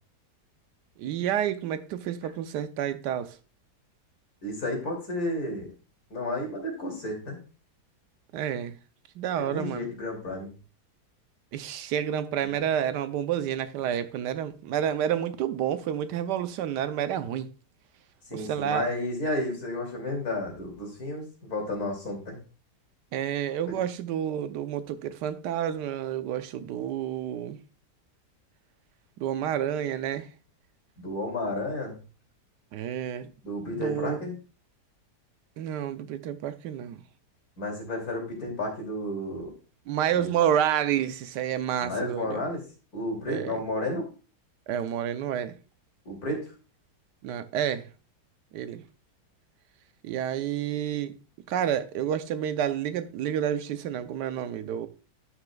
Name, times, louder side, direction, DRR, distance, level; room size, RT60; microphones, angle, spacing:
voice 1, 1.0-3.4 8.3-8.8 9.2-9.9 11.5-17.5 18.3-18.9 23.1-27.6 29.2-30.3 32.7-33.3 33.7-34.3 35.6-37.0 39.9-42.5 43.3-43.6 44.7-45.6 47.2-47.9 48.5-48.8 50.0-51.2 51.5-54.9, right 10 dB, 85° right, 1.3 m, -29 dB
voice 2, 4.4-5.7 6.1-7.4 9.3-10.5 12.4-12.5 18.2-22.4 31.0-32.0 33.4-34.3 37.6-39.5 40.1-40.3 41.8-42.6 42.9-44.1 46.0-46.4, left 1 dB, 60° left, 3.2 m, -32 dB
11.0 x 6.5 x 2.3 m
omnidirectional pair, 1.8 m